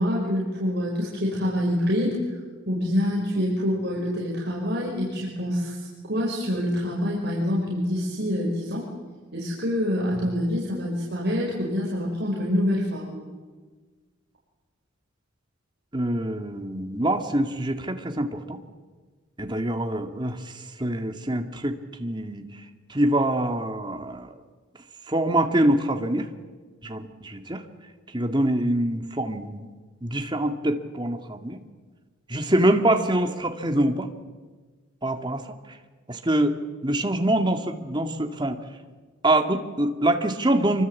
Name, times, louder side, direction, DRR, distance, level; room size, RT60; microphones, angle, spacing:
voice 1, 0.0-2.2 2.7-8.9 9.3-13.2, equal, 55° right, -3 dB, 5.9 m, -26 dB
voice 2, 15.9-18.6 19.4-20.5 20.8-22.5 22.9-24.3 25.1-26.3 26.8-27.6 28.1-29.7 30.0-31.6 32.3-34.1 35.0-35.4 36.1-36.5 36.8-38.6 39.2-40.8, right 1 dB, 20° right, 5 dB, 2.1 m, -24 dB
27.0 x 24.5 x 8.5 m, 1.4 s
head